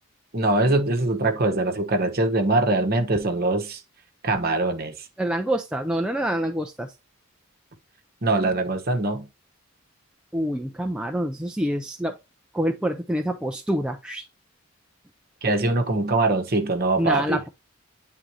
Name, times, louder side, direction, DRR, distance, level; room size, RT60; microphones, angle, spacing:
voice 1, 0.3-3.8 4.2-4.9 8.2-9.3 15.4-17.4, right 2 dB, 45° right, 1.1 m, -22 dB
voice 2, 5.2-6.9 10.3-12.2 12.5-14.2 17.0-17.5, equal, 5° right, 0.4 m, -26 dB
9.3 x 3.8 x 2.8 m
head